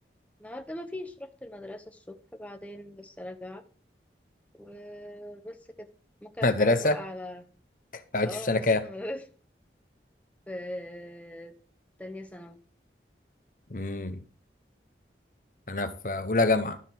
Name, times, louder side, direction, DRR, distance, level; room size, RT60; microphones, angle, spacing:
voice 1, 0.4-3.6 4.5-5.9 6.2-7.4 8.2-9.2 10.5-11.5 12.0-12.6, left 1 dB, 10° left, 0.9 m, -40 dB
voice 2, 6.4-7.0 7.9-8.8 13.7-14.2 15.7-16.8, left 2 dB, 50° left, 0.9 m, -25 dB
12.5 x 4.4 x 7.4 m
head